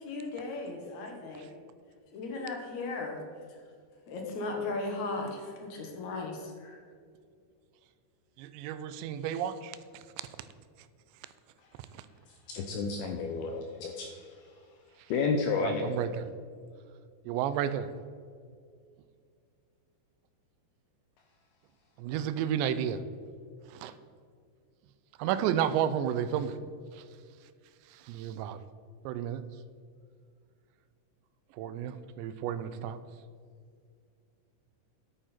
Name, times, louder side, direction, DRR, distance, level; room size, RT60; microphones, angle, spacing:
voice 1, 0.0-1.5 2.1-3.2 4.1-6.8, left 3 dB, 60° left, 2 dB, 2.0 m, -36 dB
voice 2, 8.4-10.0 11.9-12.0 15.6-16.3 17.3-17.9 22.0-23.0 23.7-23.9 25.2-26.6 26.9-27.0 27.9-28.6 29.1-29.4 31.6-33.0, right 9 dB, 85° right, 13 dB, 2.8 m, -32 dB
voice 3, 12.3-14.5 15.1-16.1, left 4 dB, 80° left, 4 dB, 2.2 m, -32 dB
11.0 x 9.0 x 4.4 m, 2.2 s
omnidirectional pair, 5.0 m